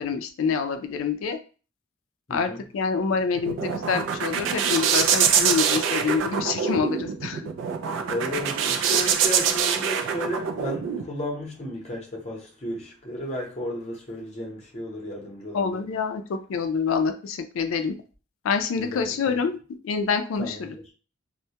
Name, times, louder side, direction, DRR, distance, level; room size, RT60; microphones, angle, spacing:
voice 1, 0.0-1.4 2.3-7.4 15.5-17.9 18.4-19.6 19.8-20.8, left 5 dB, 85° left, 0.3 m, -26 dB
voice 2, 2.3-2.6 8.1-15.8 18.8-19.4 20.4-20.8, equal, 35° left, 0.7 m, -34 dB
sound 1, 3.1-11.0, right 7 dB, 70° right, 0.3 m, -24 dB
2.2 x 2.1 x 2.7 m
head